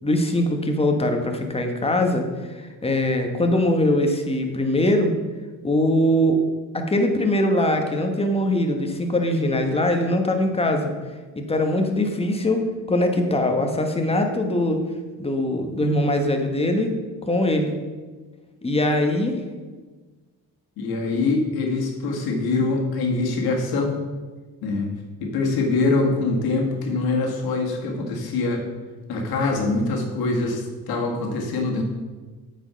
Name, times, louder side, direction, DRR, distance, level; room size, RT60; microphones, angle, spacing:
voice 1, 0.0-5.1 5.6-6.4 6.7-10.9 11.3-14.8 15.2-17.0 17.2-17.7 18.6-19.4, left 1 dB, 15° left, 4 dB, 1.2 m, -22 dB
voice 2, 20.8-24.0 24.6-24.9 25.2-28.6 29.1-31.8, left 3 dB, 85° left, 1 dB, 1.8 m, -24 dB
8.2 x 5.3 x 5.6 m, 1.3 s
cardioid pair, 100°, 36 cm